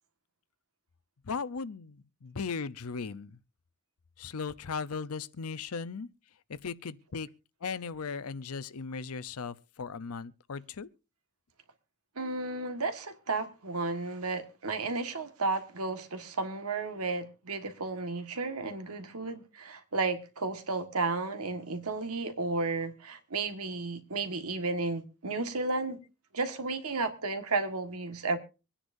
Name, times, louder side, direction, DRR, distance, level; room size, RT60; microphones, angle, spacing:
voice 1, 1.3-3.4 4.2-6.1 6.5-7.3 7.6-10.9, left 5 dB, 85° left, 0.7 m, -37 dB
voice 2, 12.2-26.0 26.3-28.4, right 3 dB, 90° right, 1.6 m, -33 dB
25.0 x 10.0 x 2.6 m
head